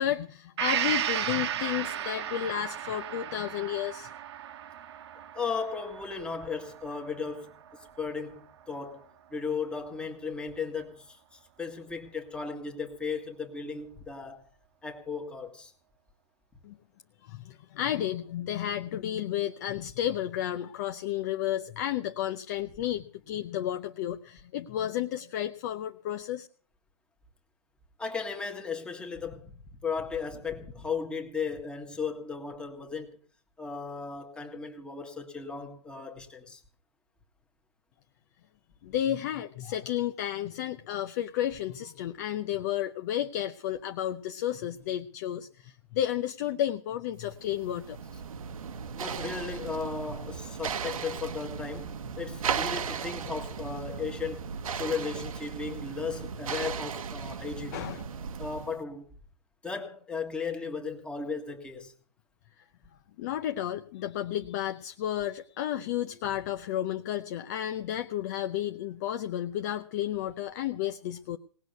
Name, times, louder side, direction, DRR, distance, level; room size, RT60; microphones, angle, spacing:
voice 1, 0.0-4.1 16.6-16.8 17.2-26.5 38.8-48.0 57.7-58.0 63.2-71.4, left 11 dB, 30° left, 0.6 m, -32 dB
Gong, 0.6-8.2 8.6-8.7, right 10 dB, 45° right, 1.2 m, -35 dB
voice 2, 5.1-14.5 14.8-15.7 28.0-33.2 33.6-36.6 48.9-57.8 58.4-59.1 59.6-61.9, left 5 dB, 5° left, 1.6 m, -36 dB
sound 1, 47.3-58.8, right 6 dB, 70° right, 1.2 m, -36 dB
18.5 x 6.3 x 9.3 m
hypercardioid pair, 155°, 19 cm